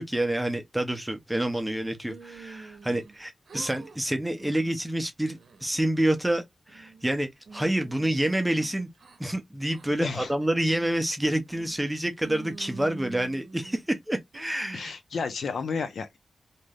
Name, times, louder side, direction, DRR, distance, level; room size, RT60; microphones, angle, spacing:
voice 1, 0.0-8.9 9.2-14.9, right 1 dB, 10° right, 0.5 m, -28 dB
sound 1, 2.1-3.2 3.5-4.0 4.4-4.7 5.2-5.8 6.3-7.1 7.5-9.2 9.7-9.9 10.4-10.9 11.5-11.9 12.2-13.8 14.3-14.9, right 3 dB, 80° right, 0.7 m, -46 dB
voice 2, 10.0-10.3 14.7-16.2, left 5 dB, 90° left, 0.6 m, -31 dB
3.2 x 2.7 x 2.3 m
wide cardioid pair, 155°, 0 cm